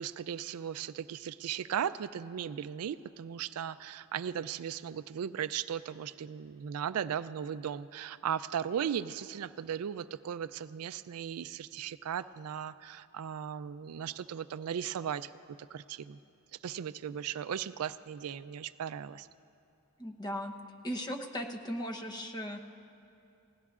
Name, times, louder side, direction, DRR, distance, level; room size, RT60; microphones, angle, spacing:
voice 1, 0.0-15.3 15.7-16.2 16.6-19.3, right 8 dB, 75° right, 14 dB, 0.4 m, -37 dB
voice 2, 20.0-20.5 20.8-22.7, equal, 20° left, 3 dB, 0.8 m, -37 dB
29.5 x 17.0 x 2.4 m, 2.7 s
head